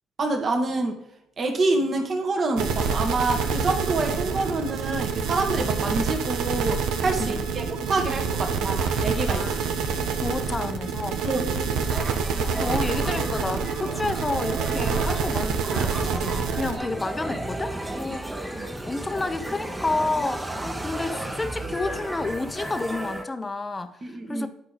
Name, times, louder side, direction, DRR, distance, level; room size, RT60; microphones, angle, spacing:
voice 1, 0.2-1.0 1.4-9.7 11.2-11.4 18.1-18.2 18.5-18.6 24.0-24.5, right 2 dB, 40° right, 1.3 m, -27 dB
sound 1, 2.6-16.8, right 5 dB, 85° right, 0.9 m, -27 dB
voice 2, 9.3-9.6 10.2-11.2 12.5-24.5, left 3 dB, 20° left, 0.7 m, -30 dB
sound 2, 11.9-23.2, right 1 dB, 10° right, 0.9 m, -34 dB
9.9 x 4.9 x 4.0 m
cardioid pair, 100°, 0 cm